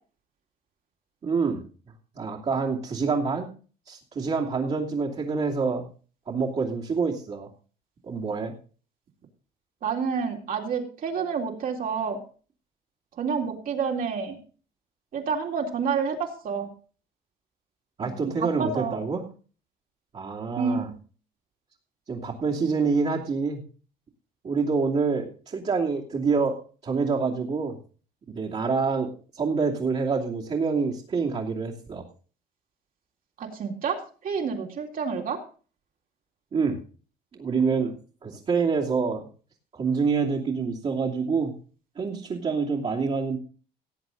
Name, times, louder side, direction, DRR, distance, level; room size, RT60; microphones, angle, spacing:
voice 1, 1.2-1.6 2.1-3.5 3.9-5.9 6.3-7.5 8.1-8.5 18.0-19.2 20.1-20.8 22.1-23.6 24.4-27.8 28.3-32.0 36.5-36.8 37.4-38.0 38.2-39.3 39.7-41.5 42.0-43.4, right 5 dB, 40° right, -5 dB, 2.8 m, -26 dB
voice 2, 9.8-12.2 13.2-14.4 15.1-16.7 18.2-19.0 20.5-21.0 33.4-35.4, right 6 dB, 55° right, 1 dB, 3.6 m, -29 dB
18.0 x 8.1 x 3.9 m, 0.38 s
cardioid pair, 110°, 17 cm